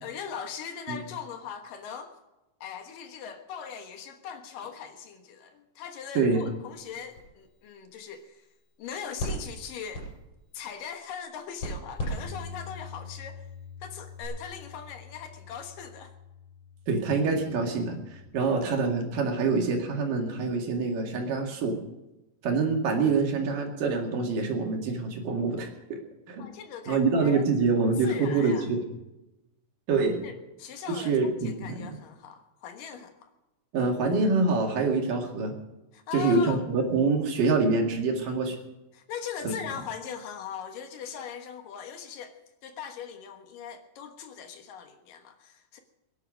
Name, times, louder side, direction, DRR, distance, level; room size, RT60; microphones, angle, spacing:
voice 1, 0.0-2.2 2.6-8.5 8.8-10.1 10.5-13.5 13.8-16.1 18.4-18.6 26.4-27.5 27.9-28.7 30.2-33.3 35.9-36.6 38.9-45.8, left 7 dB, 75° left, 6 dB, 3.0 m, -40 dB
sound 1, 6.7-14.3, equal, 40° left, 8.3 m, -41 dB
Bass guitar, 12.0-18.3, left 6 dB, 50° right, 4.5 m, -46 dB
voice 2, 16.9-21.8 22.4-26.0 26.3-26.5 26.9-28.8 29.9-30.2 30.9-32.0 33.7-35.6 36.1-38.6 39.4-39.5, right 4 dB, 75° right, 2 dB, 3.8 m, -26 dB
23.0 x 10.5 x 5.2 m, 1.0 s
omnidirectional pair, 3.9 m